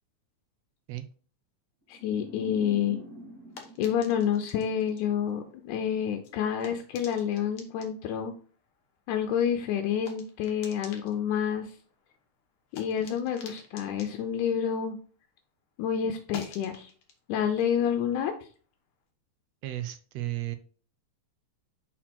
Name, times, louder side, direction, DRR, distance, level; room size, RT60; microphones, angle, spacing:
voice 1, 1.9-3.0 3.8-8.3 9.1-11.7 12.7-15.0 15.8-16.9 17.3-18.3, left 8 dB, 85° left, 4 dB, 2.1 m, -28 dB
sound 1, 1.9-5.1, right 1 dB, 35° right, 1.6 m, -46 dB
sound 2, 2.7-15.5 15.8-19.0, left 5 dB, 60° left, 1.7 m, -51 dB
voice 2, 19.6-20.6, right 15 dB, 80° right, 10 dB, 1.5 m, -34 dB
5.8 x 4.3 x 4.3 m, 0.42 s
omnidirectional pair, 3.5 m